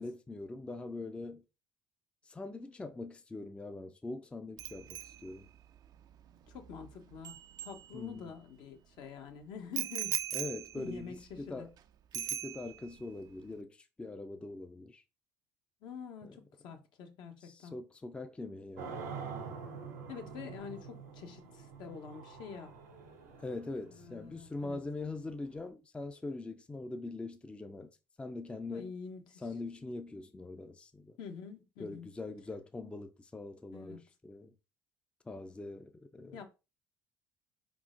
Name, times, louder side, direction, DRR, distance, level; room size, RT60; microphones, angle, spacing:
voice 1, 0.0-1.4 2.3-5.5 7.9-8.3 10.3-11.7 12.1-15.0 16.2-16.3 17.4-19.1 23.4-27.9 28.2-28.9 29.4-31.2 31.8-34.5 35.3-36.4, left 2 dB, 15° left, 0.4 m, -42 dB
Bicycle bell, 4.6-8.4 9.8-11.8 12.1-13.0 13.3-13.6, right 11 dB, 50° right, 0.4 m, -41 dB
voice 2, 6.5-10.2 10.8-11.7 15.8-17.8 20.1-22.7 23.9-24.8 28.7-29.4 31.2-32.2 33.7-34.0 36.3-36.5, left 6 dB, 65° left, 0.9 m, -47 dB
sound 1, 18.8-25.7, right 5 dB, 90° right, 0.7 m, -46 dB
4.2 x 3.7 x 2.5 m
hypercardioid pair, 65°, 8 cm